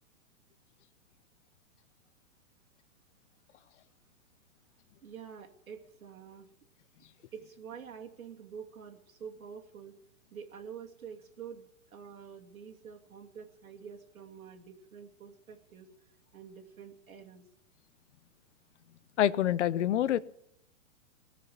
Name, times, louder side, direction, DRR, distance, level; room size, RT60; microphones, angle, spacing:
voice 1, 5.0-6.5 7.3-9.9 10.3-15.9 16.3-17.4, right 7 dB, 90° right, 3 dB, 2.7 m, -47 dB
voice 2, 19.2-20.2, left 11 dB, 60° left, 18 dB, 0.8 m, -26 dB
19.0 x 6.9 x 9.6 m, 0.77 s
hypercardioid pair, 140°, 41 cm